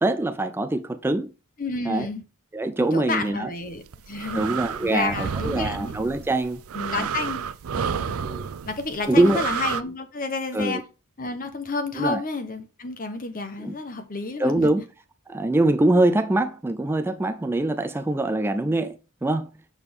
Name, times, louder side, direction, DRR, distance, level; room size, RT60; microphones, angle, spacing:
voice 1, 0.0-1.3 1.9-2.1 2.5-3.5 4.4-6.6 7.0-7.1 8.2-8.5 9.1-9.5 10.5-10.8 12.0-12.2 13.6-13.7 14.4-14.8 15.3-19.5, right 2 dB, 10° right, 0.3 m, -23 dB
voice 2, 1.6-2.2 2.9-4.5 4.8-5.9 6.7-7.5 7.7-8.2 8.6-10.8 11.2-14.7, left 3 dB, 40° left, 1.1 m, -30 dB
sound 1, 3.7-9.8, right 7 dB, 80° right, 0.5 m, -31 dB
6.8 x 6.3 x 3.6 m
head